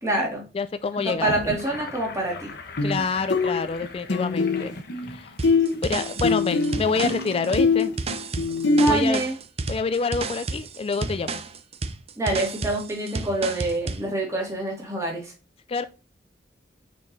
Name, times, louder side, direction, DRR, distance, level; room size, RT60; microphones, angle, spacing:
voice 1, 0.0-0.4 1.0-2.5 8.8-9.3 12.2-15.3, right 2 dB, 15° right, 2.4 m, -26 dB
voice 2, 0.5-1.3 2.8-4.8 5.1-5.3 5.8-7.9 8.9-9.2 9.7-11.4 15.7-15.8, left 4 dB, 35° left, 0.3 m, -27 dB
Gurgling / Sink (filling or washing), 1.1-8.6, left 3 dB, 60° left, 1.1 m, -40 dB
sound 1, 1.2-1.4 2.8-3.0 3.3-5.1 5.4-8.9, left 3 dB, 85° left, 1.0 m, -23 dB
sound 2, 5.4-14.1, right 3 dB, 35° right, 0.6 m, -32 dB
5.8 x 4.6 x 4.0 m
head